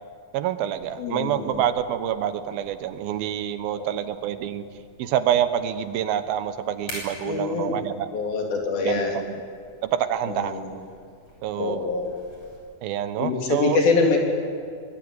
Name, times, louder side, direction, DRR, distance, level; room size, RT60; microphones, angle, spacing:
voice 1, 0.3-4.6 5.0-8.1 8.8-9.4 9.8-10.6 11.4-11.9 12.8-13.8, right 10 dB, 85° right, 11 dB, 3.0 m, -27 dB
sound 1, 0.7-12.6, left 1 dB, 35° left, 7.9 m, -47 dB
voice 2, 1.0-1.6 3.7-3.9 7.2-7.8 8.1-9.2 10.3-10.8 11.6-12.1 13.2-14.2, left 4 dB, 80° left, 1 dB, 4.9 m, -25 dB
24.0 x 21.0 x 9.8 m, 2.2 s
omnidirectional pair, 4.2 m